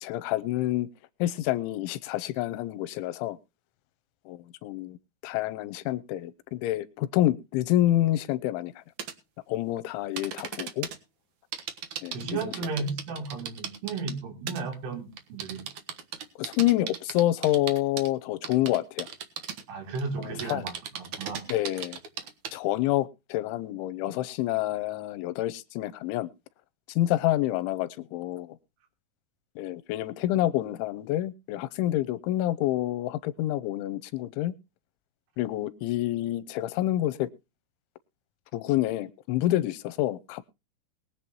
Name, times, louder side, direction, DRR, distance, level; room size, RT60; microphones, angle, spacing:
voice 1, 0.0-0.9 1.2-3.4 4.3-5.0 5.2-8.7 9.5-10.9 12.0-12.7 16.4-19.1 20.2-20.6 21.5-22.0 22.5-26.3 26.9-28.6 29.6-34.5 35.4-37.3 38.5-40.5, left 14 dB, 85° left, 15 dB, 3.2 m, -28 dB
sound 1, 9.0-9.1 10.2-11.0 11.5-14.2 14.5-14.7 15.2-18.1 18.4-19.6 19.9-22.6, right 8 dB, 70° right, 1.8 m, -36 dB
voice 2, 12.1-15.7 19.7-21.4, right 4 dB, 85° right, 5 dB, 5.7 m, -34 dB
21.5 x 8.3 x 3.0 m, 0.29 s
omnidirectional pair, 5.4 m